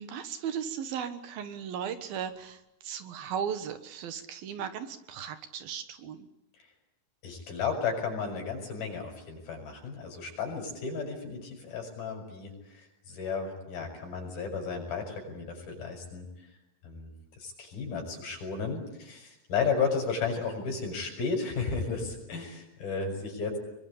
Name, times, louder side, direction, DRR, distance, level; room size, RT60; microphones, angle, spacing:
voice 1, 0.0-6.3, right 8 dB, 70° right, 10 dB, 3.2 m, -36 dB
voice 2, 7.2-16.5 16.8-17.1 17.4-23.6, left 5 dB, 65° left, 2 dB, 8.7 m, -33 dB
26.0 x 23.0 x 8.7 m, 0.89 s
omnidirectional pair, 4.6 m